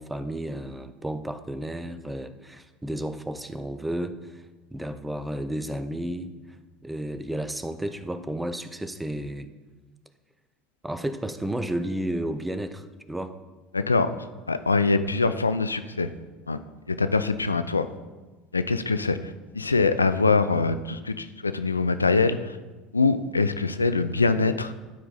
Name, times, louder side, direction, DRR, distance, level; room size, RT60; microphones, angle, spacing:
voice 1, 0.0-4.4 4.7-6.3 6.8-9.5 10.8-13.4, right 1 dB, 10° right, 10 dB, 0.6 m, -32 dB
voice 2, 13.7-14.1 14.5-16.1 16.5-16.6 16.9-17.9 18.5-22.6 22.9-24.7, left 3 dB, 90° left, 11 dB, 0.3 m, -23 dB
12.0 x 4.7 x 4.1 m, 1.2 s
figure-of-eight pair, 70°, 0 cm